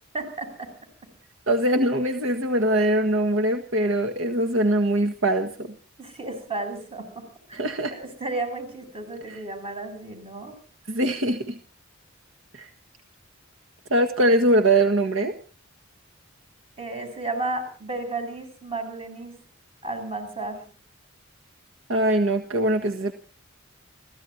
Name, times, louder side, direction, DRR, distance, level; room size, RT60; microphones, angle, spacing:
voice 1, 0.1-0.7 6.0-7.2 7.5-7.6 7.9-10.6 16.8-19.4 19.8-20.6, right 2 dB, 30° right, 6 dB, 8.0 m, -33 dB
voice 2, 1.5-5.7 7.5-7.9 9.2-9.4 10.9-11.6 12.5-12.7 13.9-15.3 21.9-23.1, right 1 dB, 65° right, 5 dB, 1.7 m, -22 dB
30.0 x 16.5 x 2.8 m, 0.42 s
head